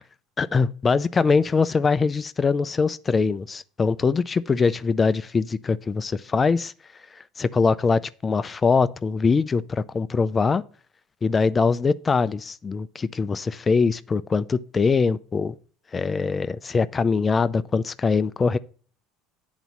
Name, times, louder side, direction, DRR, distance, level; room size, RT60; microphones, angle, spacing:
voice 1, 0.4-6.7 7.2-10.6 11.2-15.5 15.9-18.6, left 4 dB, 20° left, 0.3 m, -22 dB
9.2 x 4.0 x 6.0 m
supercardioid pair, 125°, 0 cm